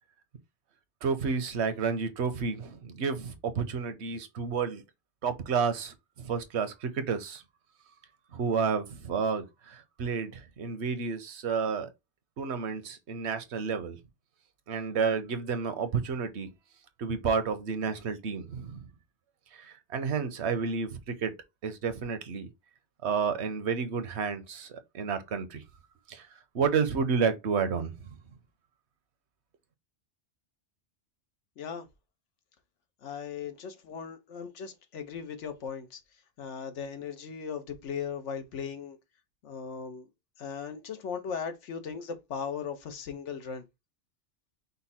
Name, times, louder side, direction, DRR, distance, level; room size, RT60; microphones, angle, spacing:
voice 1, 1.0-4.8 5.2-7.4 8.3-11.9 12.4-14.0 14.7-16.5 17.0-18.8 19.5-21.3 21.6-22.5 23.0-25.6 26.1-26.3 26.5-28.1, right 5 dB, 70° right, 1.0 m, -31 dB
voice 2, 33.0-36.0 36.4-39.0 39.4-40.1 40.4-43.6, left 6 dB, 85° left, 1.2 m, -38 dB
5.3 x 2.2 x 4.2 m
omnidirectional pair, 1.2 m